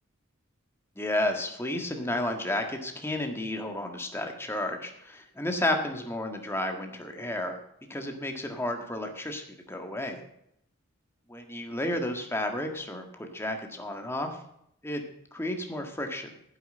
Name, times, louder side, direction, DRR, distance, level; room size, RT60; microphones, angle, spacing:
voice 1, 1.0-7.6 7.9-10.2 11.3-14.4 14.8-15.0 15.3-16.3, left 1 dB, 10° left, 4 dB, 1.6 m, -32 dB
10.5 x 7.9 x 7.8 m, 0.74 s
head